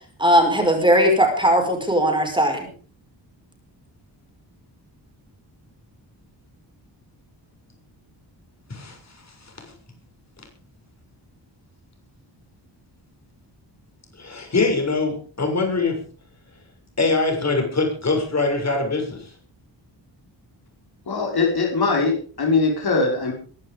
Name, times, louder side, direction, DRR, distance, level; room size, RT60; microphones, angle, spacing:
voice 1, 0.2-2.7, equal, 10° right, 3 dB, 5.2 m, -18 dB
voice 2, 14.2-16.0 17.0-19.3, left 3 dB, 35° left, 3 dB, 6.6 m, -23 dB
voice 3, 21.1-23.3, left 4 dB, 55° left, 1 dB, 5.3 m, -21 dB
22.0 x 11.5 x 5.3 m, 0.42 s
wide cardioid pair, 170°, 44 cm